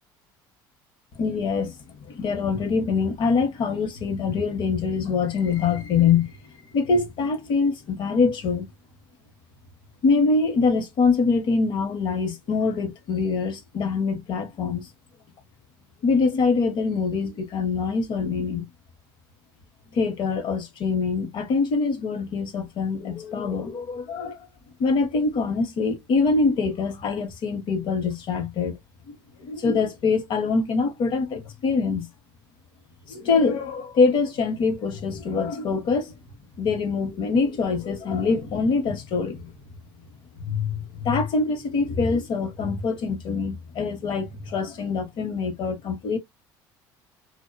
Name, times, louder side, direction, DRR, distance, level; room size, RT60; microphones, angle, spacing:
voice 1, 1.2-6.3 6.7-8.7 10.0-14.9 16.0-18.7 19.9-24.4 24.8-28.7 29.1-32.1 33.1-36.1 36.6-39.5 40.4-46.2, left 4 dB, 55° left, 0.9 m, -24 dB
2.4 x 2.1 x 2.3 m
supercardioid pair, 105°, 10 cm